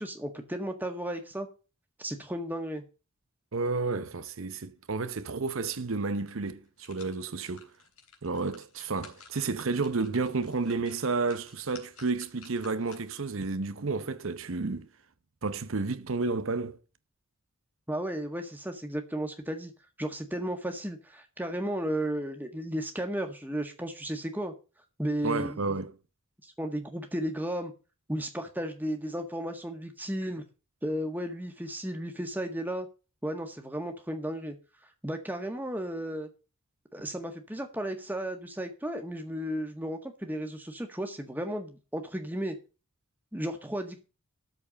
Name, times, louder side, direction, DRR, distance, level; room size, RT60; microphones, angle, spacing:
voice 1, 0.0-1.5 2.0-2.8 17.9-19.7 20.0-24.5 25.0-25.8 26.4-27.7 28.1-30.5 30.8-32.9 33.2-34.5 35.0-36.3 36.9-42.5 43.3-44.0, right 1 dB, 10° right, 1.7 m, -34 dB
voice 2, 3.5-7.7 8.2-14.9 15.4-16.8 25.2-25.9, right 3 dB, 65° right, 0.8 m, -31 dB
sound 1, 6.4-13.3 13.7-13.8, left 6 dB, 80° left, 3.4 m, -55 dB
13.5 x 4.7 x 8.7 m
head